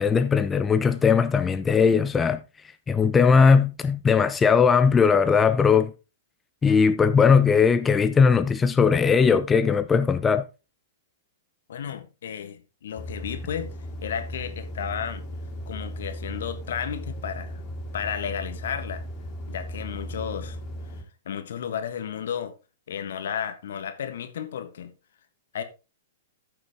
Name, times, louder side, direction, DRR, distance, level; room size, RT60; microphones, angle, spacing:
voice 1, 0.0-2.4 2.9-5.9 6.6-10.4, left 5 dB, 15° left, 0.5 m, -19 dB
voice 2, 11.7-13.7 14.0-15.2 15.7-17.6 17.9-19.0 19.5-20.6 21.2-22.5 22.9-24.9 25.5-25.6, left 8 dB, 65° left, 1.5 m, -33 dB
sound 1, 13.0-21.0, equal, 30° left, 3.1 m, -36 dB
14.0 x 5.9 x 3.5 m
figure-of-eight pair, 110°, 0 cm